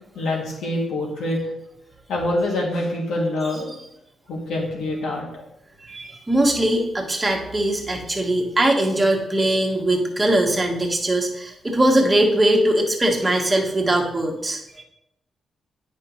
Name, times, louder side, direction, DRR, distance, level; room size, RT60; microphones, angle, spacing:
voice 1, 0.2-1.4 2.1-3.7 4.3-5.2, left 1 dB, 85° left, -2 dB, 2.0 m, -25 dB
voice 2, 5.8-14.8, right 1 dB, 20° right, 1 dB, 1.4 m, -21 dB
8.7 x 5.2 x 2.9 m, 0.85 s
cardioid pair, 80°, 0 cm